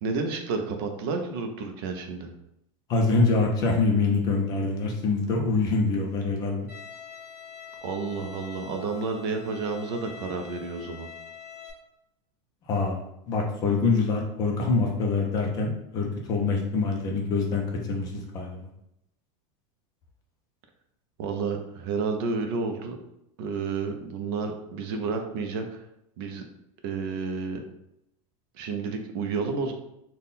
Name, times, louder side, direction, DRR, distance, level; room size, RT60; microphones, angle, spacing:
voice 1, 0.0-2.3 7.8-11.1 21.2-23.0 23.4-25.8 26.2-26.4 26.8-27.6 28.5-29.7, right 4 dB, 45° right, 5 dB, 0.4 m, -30 dB
voice 2, 2.9-6.7 12.7-13.0 13.3-17.6 17.9-18.7, left 3 dB, 20° left, 0 dB, 0.4 m, -25 dB
Bowed string instrument, 6.7-11.7, left 8 dB, 10° right, 0.9 m, -44 dB
3.6 x 2.2 x 4.0 m, 0.81 s
supercardioid pair, 175°, 18 cm